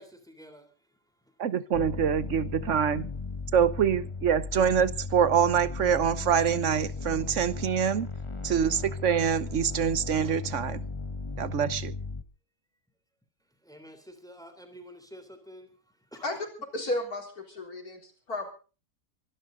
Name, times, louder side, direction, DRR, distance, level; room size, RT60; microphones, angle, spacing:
voice 1, 0.0-1.4 13.6-16.5, equal, ahead, 3.2 m, -50 dB
voice 2, 1.4-3.1 3.5-8.1 8.4-10.9 11.4-11.9, right 8 dB, 55° right, 1.1 m, -25 dB
sound 1, 1.7-12.2, left 4 dB, 20° left, 1.2 m, -36 dB
voice 3, 16.7-18.5, left 1 dB, 60° left, 4.3 m, -33 dB
24.5 x 12.5 x 3.9 m
omnidirectional pair, 1.8 m